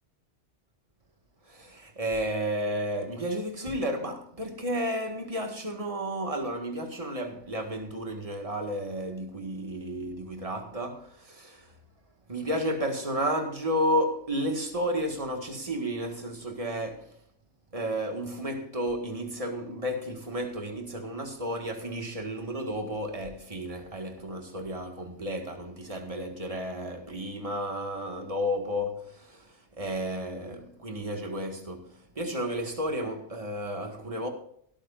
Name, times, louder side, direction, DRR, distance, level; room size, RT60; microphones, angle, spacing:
voice 1, 1.5-11.7 12.3-17.2 17.7-34.3, equal, 30° right, 1.9 m, -32 dB
17.5 x 13.0 x 2.6 m
omnidirectional pair, 1.2 m